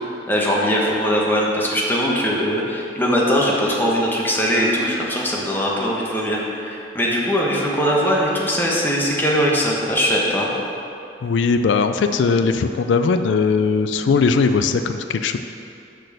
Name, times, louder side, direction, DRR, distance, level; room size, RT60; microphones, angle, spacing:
voice 1, 0.3-10.5, equal, 10° left, -3 dB, 1.3 m, -20 dB
voice 2, 11.2-15.4, left 4 dB, 85° left, 9 dB, 0.4 m, -19 dB
6.4 x 6.3 x 6.5 m, 2.7 s
head